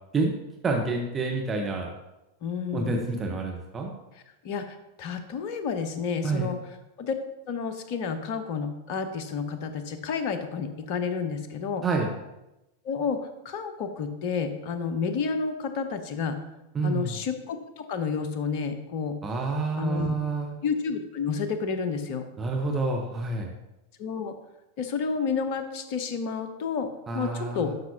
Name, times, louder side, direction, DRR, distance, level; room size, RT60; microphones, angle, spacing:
voice 1, 0.6-1.9 2.7-3.9 6.2-6.5 11.8-12.1 16.7-17.1 19.2-20.5 22.4-23.5 27.1-27.7, right 3 dB, 20° right, 1 dB, 1.1 m, -28 dB
voice 2, 2.4-3.0 4.4-7.1 7.5-11.8 12.8-16.4 16.8-19.2 19.8-20.1 20.6-22.2 24.0-24.3 24.8-27.7, left 5 dB, 45° left, 9 dB, 0.9 m, -30 dB
11.5 x 5.9 x 2.9 m, 0.94 s
figure-of-eight pair, 90°, 0 cm